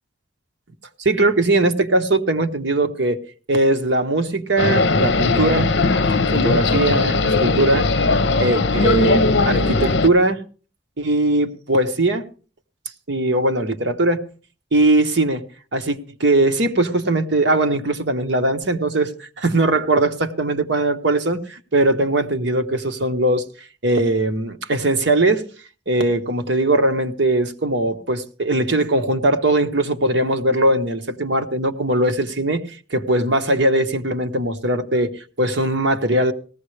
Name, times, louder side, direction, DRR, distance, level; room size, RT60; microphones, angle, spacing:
voice 1, 1.0-3.2 3.5-5.7 6.3-7.9 8.4-10.4 11.0-12.2 13.1-14.2 14.7-15.4 15.7-23.5 23.8-25.4 25.9-32.6 32.9-36.3, right 2 dB, 70° right, 1.2 m, -20 dB
sound 1, 4.6-10.1, left 3 dB, 65° left, 0.8 m, -18 dB
18.5 x 15.5 x 3.3 m
head